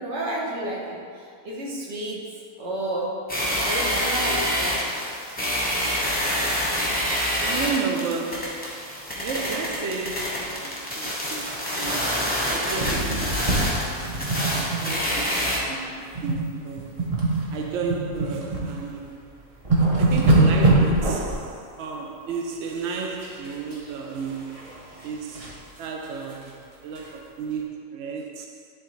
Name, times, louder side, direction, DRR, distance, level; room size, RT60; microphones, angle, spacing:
voice 1, 0.0-2.3 2.6-3.2 3.6-4.8, right 1 dB, 50° right, 1.3 m, -31 dB
sound 1, 3.3-15.6, equal, 5° left, 1.0 m, -27 dB
voice 2, 7.4-17.1 17.5-19.3 19.9-28.7, right 5 dB, 75° right, 0.6 m, -33 dB
sound 2, 12.7-15.2 15.4-15.6 16.1-16.5 16.8-18.7 19.1-19.2 19.5-21.4 23.2-23.8 24.1-25.6 26.0-26.1 26.4-26.5 26.9-27.0, right 2 dB, 30° right, 0.7 m, -23 dB
10.0 x 3.7 x 3.2 m
omnidirectional pair, 1.7 m